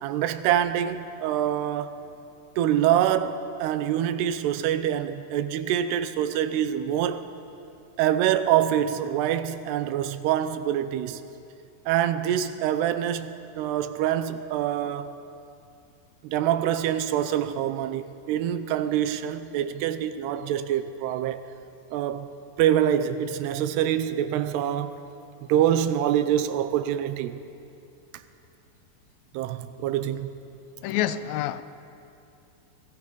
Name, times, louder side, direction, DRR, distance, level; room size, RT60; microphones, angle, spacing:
voice 1, 0.0-2.0 2.6-7.3 8.0-11.2 11.9-15.2 16.2-21.4 21.9-22.3 22.6-24.9 25.4-27.4 29.3-30.3, right 10 dB, 90° right, 2.9 m, -25 dB
voice 2, 30.8-31.6, left 12 dB, 75° left, 2.2 m, -27 dB
30.0 x 20.5 x 5.4 m
omnidirectional pair, 4.6 m